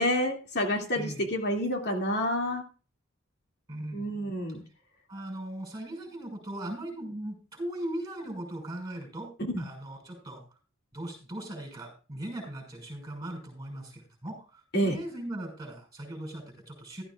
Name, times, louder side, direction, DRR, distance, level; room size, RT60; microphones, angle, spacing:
voice 1, 0.0-2.6 3.9-4.6 9.5-9.6 14.7-15.0, equal, 55° left, 2 dB, 2.5 m, -28 dB
voice 2, 0.9-1.3 3.7-4.1 5.1-10.4 10.9-17.0, right 1 dB, 20° right, 4 dB, 5.7 m, -39 dB
15.5 x 13.0 x 2.4 m, 0.34 s
head